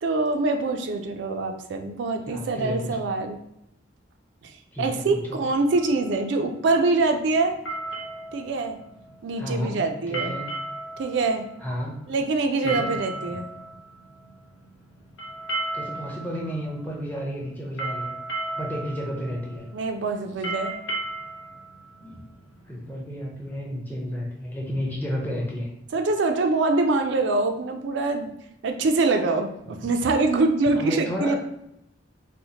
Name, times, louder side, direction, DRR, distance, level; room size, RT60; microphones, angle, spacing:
voice 1, 0.0-3.4 4.4-4.5 4.8-7.5 8.3-8.8 9.2-10.3 11.0-11.4 12.1-13.5 19.7-20.7 25.9-28.3 28.6-31.3, right 3 dB, 65° right, 5 dB, 0.4 m, -24 dB
voice 2, 2.3-3.1 4.7-5.5 9.4-9.7 10.1-10.4 11.6-12.0 12.6-12.9 15.7-18.1 18.6-19.7 22.0-22.2 22.7-25.7 30.7-31.3, equal, 10° left, -3 dB, 0.6 m, -32 dB
sound 1, 5.7-22.9, right 2 dB, 90° left, 0.7 m, -36 dB
4.2 x 2.1 x 2.8 m, 0.80 s
head